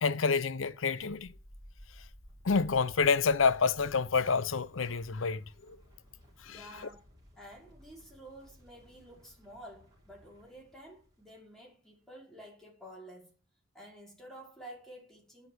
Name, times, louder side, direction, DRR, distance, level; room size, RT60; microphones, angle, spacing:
voice 1, 0.0-1.3 2.4-5.8 6.4-6.9, left 5 dB, 80° left, 0.7 m, -28 dB
sound 1, 0.8-11.6, equal, 20° right, 4.5 m, -57 dB
voice 2, 6.5-7.0 7.4-13.3 13.7-15.5, right 1 dB, ahead, 4.8 m, -51 dB
10.0 x 5.9 x 7.9 m
head